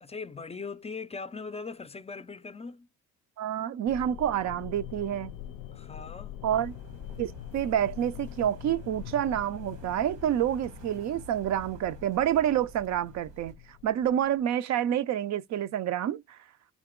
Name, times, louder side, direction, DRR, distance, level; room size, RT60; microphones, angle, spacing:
voice 1, 0.0-2.9 5.7-6.3, left 4 dB, 20° left, 0.4 m, -40 dB
voice 2, 3.4-5.3 6.4-6.7 7.2-13.6 13.8-16.4, right 10 dB, 65° right, 0.5 m, -28 dB
sound 1, 3.8-14.4, left 11 dB, 90° left, 0.5 m, -44 dB
sound 2, 6.5-13.5, right 3 dB, 85° right, 1.3 m, -51 dB
3.8 x 2.9 x 3.6 m
cardioid pair, 90°, 30 cm